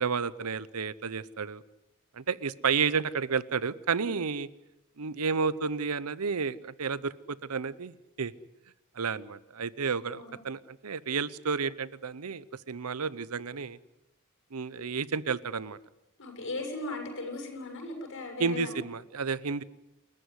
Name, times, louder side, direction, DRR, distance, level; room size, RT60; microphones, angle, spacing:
voice 1, 0.0-1.6 2.1-4.5 5.0-8.3 9.0-13.8 14.5-15.8 18.4-19.6, right 5 dB, 85° right, 18 dB, 0.8 m, -31 dB
voice 2, 16.2-18.8, left 2 dB, 60° left, 3 dB, 7.0 m, -37 dB
28.5 x 14.5 x 9.7 m, 0.92 s
head